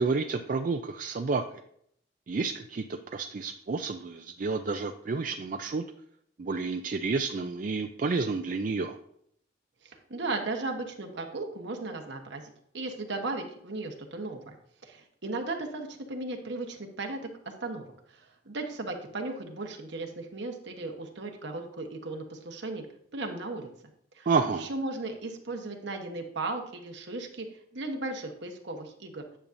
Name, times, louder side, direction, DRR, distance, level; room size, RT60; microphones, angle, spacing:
voice 1, 0.0-1.4 2.3-5.8 6.4-9.0 24.3-24.7, right 4 dB, 45° right, 6 dB, 0.4 m, -30 dB
voice 2, 9.8-12.4 12.7-14.6 14.8-17.3 17.6-22.9 23.1-23.7 24.1-24.3 24.5-27.5 27.7-29.3, right 2 dB, 60° right, 3 dB, 1.1 m, -36 dB
9.9 x 6.9 x 2.6 m, 0.68 s
head